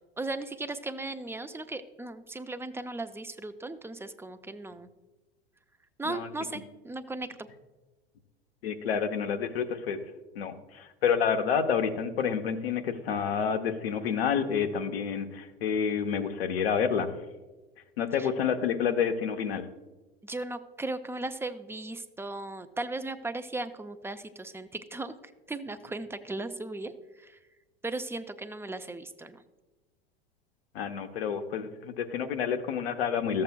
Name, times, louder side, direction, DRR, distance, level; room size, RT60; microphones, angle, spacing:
voice 1, 0.2-4.9 6.0-7.5 18.2-18.3 20.2-25.1 25.5-27.4 27.8-29.4, right 2 dB, 10° right, 8 dB, 0.4 m, -37 dB
voice 2, 8.6-10.0 10.3-17.1 18.0-19.7 30.7-33.4, left 7 dB, 75° left, 7 dB, 0.9 m, -29 dB
14.0 x 7.6 x 2.2 m, 1.2 s
hypercardioid pair, 85°, 30 cm